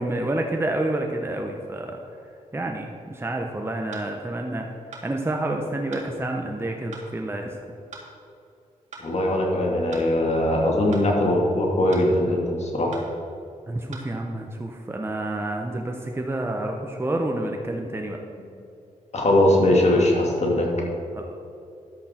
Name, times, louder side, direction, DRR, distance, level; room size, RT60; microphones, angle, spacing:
voice 1, 0.0-2.0 2.5-4.8 5.0-7.6 13.7-18.2 21.1-21.3, right 1 dB, 15° right, 2 dB, 1.0 m, -29 dB
sound 1, 3.9-4.1 4.9-5.1 5.9-6.1 6.9-7.1 7.9-8.1 8.9-9.1 9.9-10.1 10.9-11.1 11.9-12.1 12.9-13.1 13.9-14.1, right 4 dB, 60° right, 2.1 m, -41 dB
voice 2, 9.0-12.9 19.1-20.7, left 1 dB, 55° left, -1 dB, 2.4 m, -21 dB
11.0 x 8.0 x 4.5 m, 2.6 s
cardioid pair, 60°, 14 cm